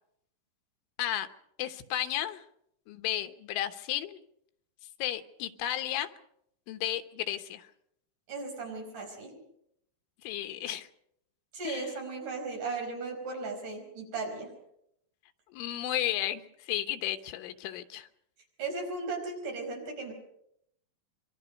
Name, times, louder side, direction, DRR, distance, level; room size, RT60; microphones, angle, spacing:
voice 1, 1.6-2.4 2.9-4.2 5.0-6.1 6.7-7.7 10.2-10.9 11.7-11.9 15.5-18.1, left 12 dB, 85° left, 9 dB, 3.5 m, -33 dB
voice 2, 8.3-9.3 11.5-14.5 18.6-20.1, right 3 dB, 45° right, 2 dB, 6.2 m, -36 dB
27.0 x 23.0 x 5.3 m, 0.75 s
omnidirectional pair, 5.4 m